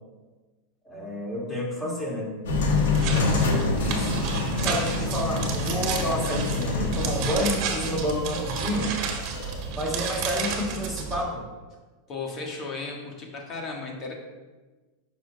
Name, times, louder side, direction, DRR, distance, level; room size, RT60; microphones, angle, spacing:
voice 1, 0.8-2.3 3.1-4.1 4.6-8.9 9.7-11.5, left 1 dB, 10° left, -3 dB, 2.0 m, -29 dB
sound 1, 2.5-9.7, left 3 dB, 85° left, 1.2 m, -27 dB
sound 2, 2.9-11.2, right 6 dB, 50° right, 1.3 m, -32 dB
voice 2, 12.1-14.1, left 3 dB, 35° left, 0 dB, 1.4 m, -35 dB
8.9 x 6.2 x 2.2 m, 1.3 s
supercardioid pair, 125°, 0 cm